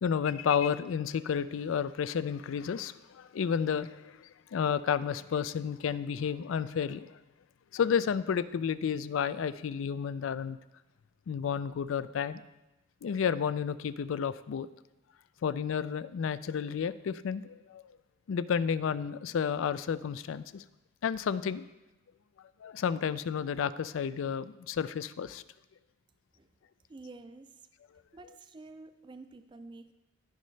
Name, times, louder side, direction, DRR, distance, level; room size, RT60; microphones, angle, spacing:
voice 1, 0.0-7.2 7.7-10.6 11.3-12.4 13.0-14.7 15.4-17.8 18.3-20.6 21.0-21.6 22.6-25.4, left 7 dB, 85° left, 16 dB, 0.4 m, -31 dB
voice 2, 26.9-27.6 28.1-29.9, right 3 dB, 25° right, 9 dB, 0.4 m, -49 dB
14.0 x 5.4 x 3.2 m, 0.99 s
head